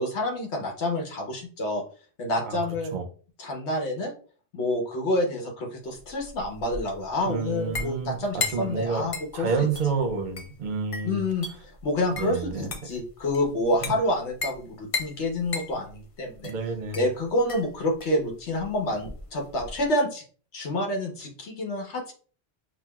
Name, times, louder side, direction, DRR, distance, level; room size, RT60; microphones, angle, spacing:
voice 1, 0.0-1.8 2.2-2.9 3.4-4.1 4.5-9.7 11.0-11.5 11.8-16.5 16.9-20.2 20.5-22.1, left 1 dB, 80° left, 1 dB, 1.2 m, -28 dB
sound 1, 5.9-19.9, left 3 dB, 45° left, 0.5 m, -37 dB
voice 2, 7.3-11.2 12.2-12.7 13.8-14.0 16.4-17.0, right 5 dB, 55° right, 4 dB, 0.7 m, -29 dB
5.7 x 2.2 x 2.2 m, 0.41 s
omnidirectional pair, 1.1 m